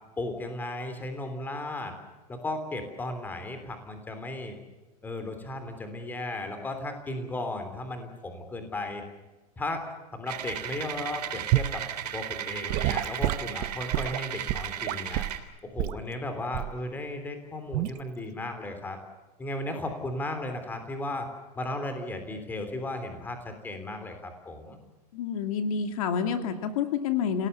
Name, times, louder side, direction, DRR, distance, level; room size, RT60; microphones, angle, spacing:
voice 1, 0.2-1.9 2.3-4.6 5.0-9.0 9.6-9.8 10.1-11.8 12.1-15.3 15.6-19.0 19.4-21.3 21.5-24.8, left 2 dB, 10° left, 7 dB, 3.2 m, -35 dB
sound 1, 10.3-15.4, right 10 dB, 85° right, 3.6 m, -36 dB
Gurgling / Sink (filling or washing) / Liquid, 11.5-11.8 12.7-15.4 15.8-16.0 16.5-16.8 17.7-18.0, right 16 dB, 35° right, 0.6 m, -28 dB
voice 2, 25.1-27.5, left 7 dB, 60° left, 7 dB, 2.4 m, -28 dB
28.5 x 18.0 x 7.0 m, 1.2 s
supercardioid pair, 160°, 20 cm